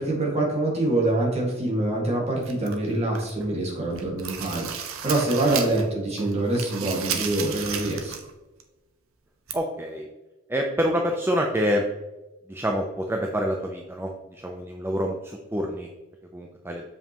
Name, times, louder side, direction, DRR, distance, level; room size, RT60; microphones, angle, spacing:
voice 1, 0.0-8.1, right 2 dB, 30° right, -2 dB, 1.8 m, -25 dB
sound 1, 2.4-3.5 3.8-5.9 6.2-8.3 8.6-8.7 9.5-9.6, right 7 dB, 85° right, 0.8 m, -33 dB
voice 2, 9.5-10.1 10.5-11.9 12.5-15.9 16.3-16.8, equal, 10° right, 2 dB, 0.5 m, -27 dB
7.2 x 5.4 x 2.9 m, 1.1 s
head